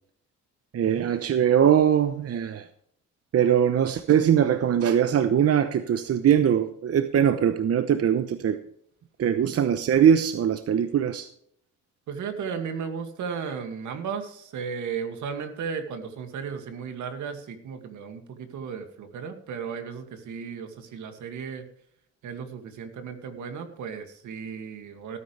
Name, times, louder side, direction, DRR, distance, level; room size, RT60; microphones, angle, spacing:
voice 1, 0.7-2.7 3.3-8.6 9.2-11.3, right 9 dB, 50° right, 10 dB, 0.9 m, -21 dB
voice 2, 12.1-21.7 22.2-25.2, right 6 dB, 75° right, 6 dB, 2.3 m, -35 dB
18.0 x 9.7 x 3.4 m, 0.68 s
cardioid pair, 90°, 30 cm